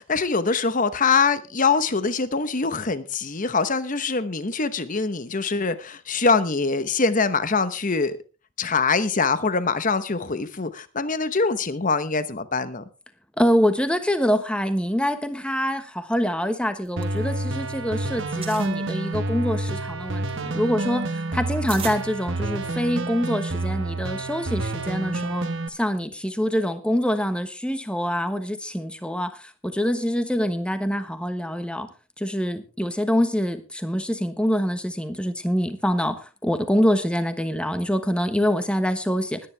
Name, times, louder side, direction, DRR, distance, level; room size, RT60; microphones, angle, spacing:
voice 1, 0.0-8.2 8.6-12.9, left 4 dB, 35° left, 13 dB, 1.0 m, -23 dB
voice 2, 13.4-31.9 32.2-39.5, equal, 5° left, 9 dB, 1.2 m, -25 dB
sound 1, 16.7-17.8 18.1-18.7 19.4-22.9, right 6 dB, 25° right, 2.0 m, -39 dB
sound 2, 17.0-25.7, right 2 dB, 55° right, 1.2 m, -29 dB
20.0 x 10.0 x 3.4 m, 0.32 s
head